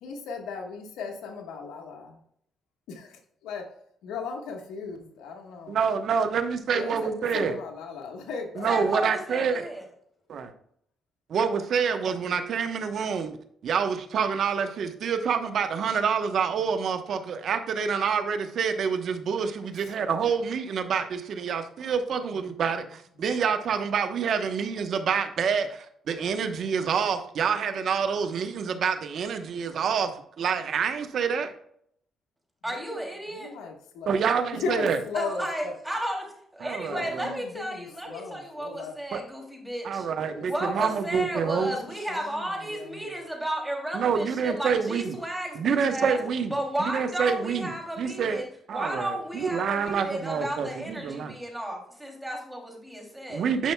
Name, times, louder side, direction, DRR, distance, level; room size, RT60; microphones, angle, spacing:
voice 1, 0.0-2.2 2.9-3.7 4.0-5.8 6.7-9.2 19.8-19.9 22.3-22.5 23.2-23.4 32.6-33.0 33.3-34.2 34.5-35.7 36.9-39.0 40.3-40.9 41.5-43.2, left 5 dB, 90° left, 2 dB, 1.3 m, -37 dB
voice 2, 5.7-7.5 8.6-9.7 10.3-10.5 11.3-13.4 13.6-31.5 34.1-35.0 36.6-37.3 39.1-39.2 39.8-41.7 43.9-45.2 45.5-46.5 46.8-48.4 48.7-51.4 53.3-53.7, right 6 dB, 65° right, 8 dB, 0.9 m, -27 dB
voice 3, 8.7-9.8 32.6-33.5 35.1-36.2 36.5-40.1 40.4-46.2 46.5-48.5 48.7-53.5, right 1 dB, 5° right, 0 dB, 2.7 m, -33 dB
10.5 x 5.7 x 2.2 m, 0.68 s
cardioid pair, 90°, 0 cm